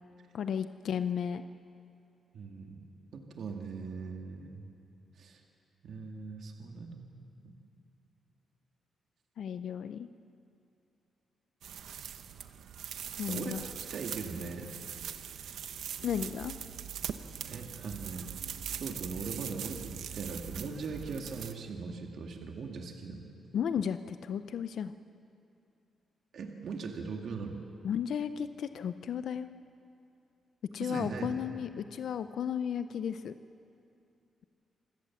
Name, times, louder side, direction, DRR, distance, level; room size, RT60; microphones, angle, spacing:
voice 1, 0.3-1.4 9.4-10.1 13.2-13.7 16.0-16.5 23.5-24.9 27.8-29.5 30.7-33.3, left 8 dB, 65° left, 11 dB, 0.5 m, -34 dB
voice 2, 2.3-2.8 3.1-4.6 5.2-5.4 5.8-7.2 7.4-7.5 13.3-14.7 17.5-18.3 18.8-23.3 26.3-27.6 30.8-31.4, right 4 dB, 60° right, 2 dB, 1.9 m, -40 dB
sound 1, 11.6-21.5, right 8 dB, 80° right, 1.0 m, -41 dB
26.5 x 16.5 x 7.2 m, 2.6 s
cardioid pair, 135°, 0 cm